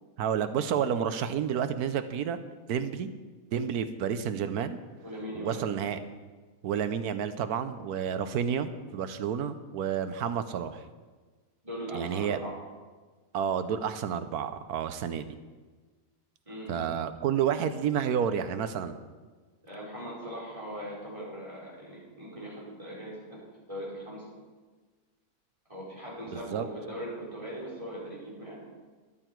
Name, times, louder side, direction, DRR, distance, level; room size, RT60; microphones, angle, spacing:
voice 1, 0.2-2.4 2.7-3.1 3.5-4.8 5.3-6.0 6.6-10.8 11.9-12.4 13.3-15.4 16.7-18.9 26.3-26.6, right 8 dB, 80° right, 11 dB, 1.2 m, -30 dB
voice 2, 5.0-5.7 11.6-12.6 16.4-16.7 19.6-23.4 23.7-24.2 25.7-28.6, right 1 dB, 20° right, -6 dB, 4.9 m, -40 dB
13.0 x 11.0 x 4.6 m, 1.4 s
omnidirectional pair, 1.6 m